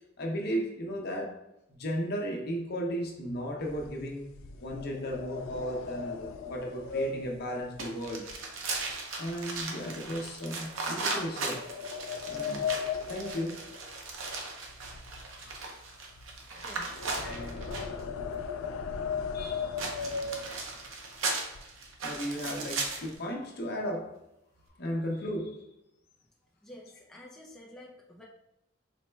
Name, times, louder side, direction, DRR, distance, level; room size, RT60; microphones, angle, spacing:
voice 1, 0.2-1.4 1.7-4.3 4.6-8.2 9.2-11.6 12.3-12.7 13.1-13.7 19.3-19.8 22.0-24.1 24.8-25.6, equal, 50° left, 0 dB, 0.7 m, -35 dB
sound 1, 3.6-9.0 9.3-9.6 10.1-10.2 11.1-14.4 14.6-20.9 21.5-21.6 21.9-22.2 22.5-23.2, left 5 dB, 85° left, 0.3 m, -37 dB
sound 2, 7.8-18.0 19.8-23.2, right 3 dB, 85° right, 0.6 m, -37 dB
voice 2, 16.5-17.8 26.6-28.2, left 1 dB, 5° left, -4 dB, 0.4 m, -49 dB
4.1 x 2.1 x 3.2 m, 0.84 s
head